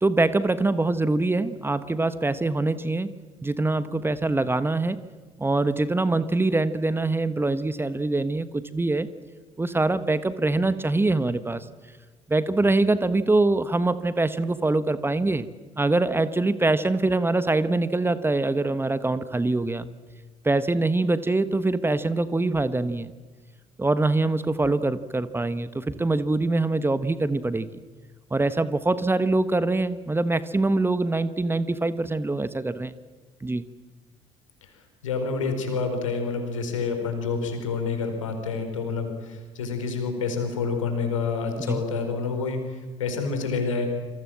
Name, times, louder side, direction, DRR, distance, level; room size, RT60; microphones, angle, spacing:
voice 1, 0.0-3.1 3.4-5.0 5.4-9.1 9.6-11.7 12.3-15.5 15.8-19.9 20.4-23.1 23.8-27.7 28.3-33.0 33.4-33.6 41.7-41.8, right 2 dB, 15° right, 14 dB, 1.3 m, -24 dB
voice 2, 35.0-43.9, left 4 dB, 75° left, 6 dB, 4.5 m, -28 dB
28.0 x 26.0 x 7.5 m, 1.4 s
figure-of-eight pair, 55°, 17 cm